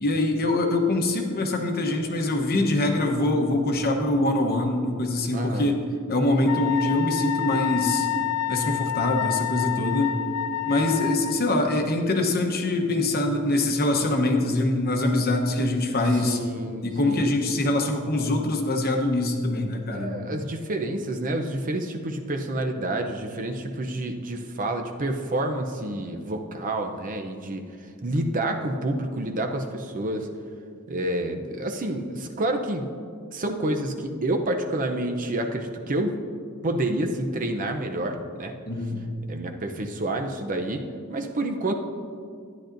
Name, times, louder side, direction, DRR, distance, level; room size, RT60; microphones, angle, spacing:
voice 1, 0.0-5.8 6.1-8.1 8.5-10.2 10.7-16.4 16.8-20.1 38.7-39.0, left 2 dB, 45° left, 3 dB, 0.9 m, -24 dB
voice 2, 5.3-5.7 16.1-17.3 19.9-27.6 28.0-30.3 30.9-32.9 33.3-36.2 36.6-38.5 39.3-40.8 41.1-41.7, right 1 dB, 40° right, 4 dB, 0.6 m, -28 dB
Wind instrument woodwind instrument, 6.5-11.4, left 11 dB, 80° left, 0.3 m, -28 dB
12.5 x 10.0 x 2.6 m, 2.3 s
head